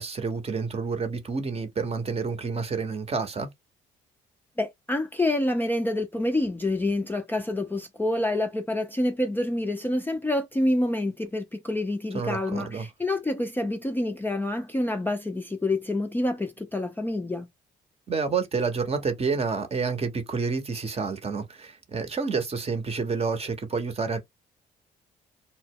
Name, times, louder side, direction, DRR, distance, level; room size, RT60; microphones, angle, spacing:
voice 1, 0.0-3.5 12.1-12.9 18.1-24.2, right 4 dB, 30° right, 0.7 m, -29 dB
voice 2, 4.6-17.5, left 1 dB, 10° left, 0.4 m, -27 dB
2.0 x 2.0 x 3.5 m
hypercardioid pair, 55°, 19 cm